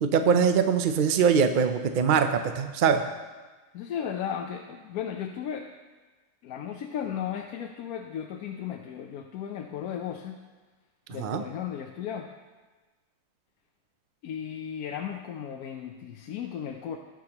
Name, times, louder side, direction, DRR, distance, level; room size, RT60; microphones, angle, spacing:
voice 1, 0.0-3.0 11.2-11.4, right 6 dB, 60° right, 7 dB, 0.5 m, -22 dB
voice 2, 3.7-5.7 6.4-10.4 11.1-12.3 14.2-17.0, left 8 dB, 85° left, 3 dB, 1.1 m, -35 dB
18.5 x 6.3 x 2.9 m, 1.3 s
omnidirectional pair, 1.5 m